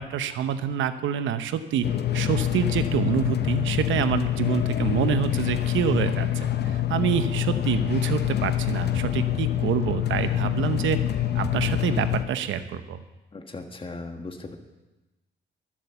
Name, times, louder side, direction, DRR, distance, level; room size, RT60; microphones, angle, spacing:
voice 1, 0.0-1.9 2.1-11.0 11.3-13.0, right 9 dB, 75° right, 10 dB, 0.9 m, -27 dB
sound 1, 1.8-12.2, left 11 dB, 55° left, 0.7 m, -26 dB
voice 2, 13.3-14.6, left 3 dB, 25° left, 4 dB, 1.6 m, -37 dB
13.0 x 7.6 x 6.9 m, 1.1 s
cardioid pair, 90°, 20 cm